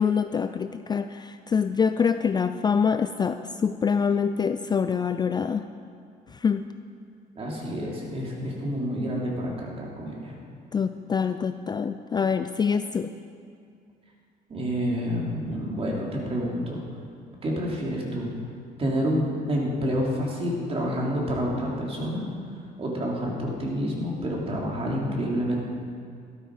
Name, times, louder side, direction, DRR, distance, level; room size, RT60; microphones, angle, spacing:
voice 1, 0.0-5.6 6.4-6.6 10.7-13.1, left 6 dB, 25° left, 9 dB, 0.4 m, -25 dB
voice 2, 7.3-10.4 14.5-16.8 17.4-18.3 18.8-22.3 22.8-25.6, equal, 35° right, -3 dB, 3.2 m, -28 dB
13.0 x 12.5 x 4.9 m, 2.3 s
cardioid pair, 110°, 17 cm